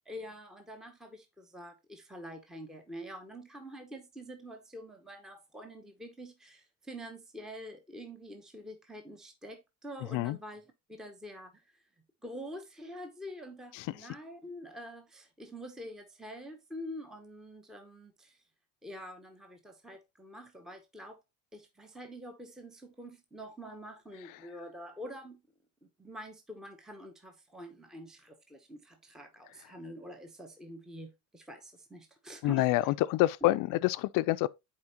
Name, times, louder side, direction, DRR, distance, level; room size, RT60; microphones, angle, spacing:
voice 1, 0.1-10.6 10.9-11.8 12.2-18.4 18.8-21.2 21.5-25.4 26.0-32.7, equal, ahead, 0.8 m, -46 dB
voice 2, 32.4-34.5, left 17 dB, 50° left, 0.4 m, -27 dB
9.7 x 4.4 x 2.8 m
supercardioid pair, 115°, 42 cm